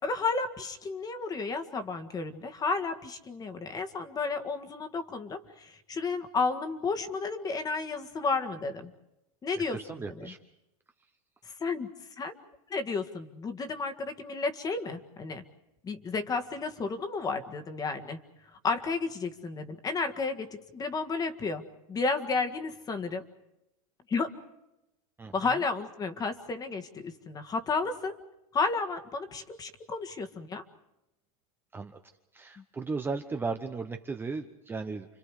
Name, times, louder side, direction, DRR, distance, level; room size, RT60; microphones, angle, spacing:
voice 1, 0.0-8.9 9.4-10.3 11.4-11.9 12.2-12.3 12.7-15.4 15.8-18.2 18.6-21.6 21.9-23.3 24.1-24.3 25.3-28.2 28.5-30.6 32.6-32.7, left 4 dB, 20° left, 8 dB, 1.8 m, -32 dB
voice 2, 9.7-10.4 25.2-25.6 31.7-32.0 32.3-35.1, right 4 dB, 10° right, 5 dB, 1.0 m, -36 dB
29.5 x 25.0 x 5.0 m, 0.89 s
supercardioid pair, 145°, 18 cm